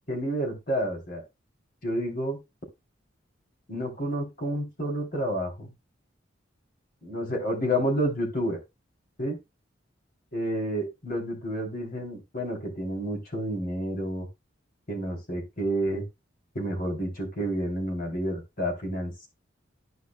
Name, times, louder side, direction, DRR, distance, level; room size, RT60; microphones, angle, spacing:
voice 1, 0.1-1.2 1.8-2.4 3.7-5.7 7.0-8.6 9.2-9.4 10.3-14.3 14.9-16.1 16.5-19.3, equal, 50° left, 1 dB, 3.1 m, -30 dB
13.0 x 5.0 x 2.3 m, 0.21 s
head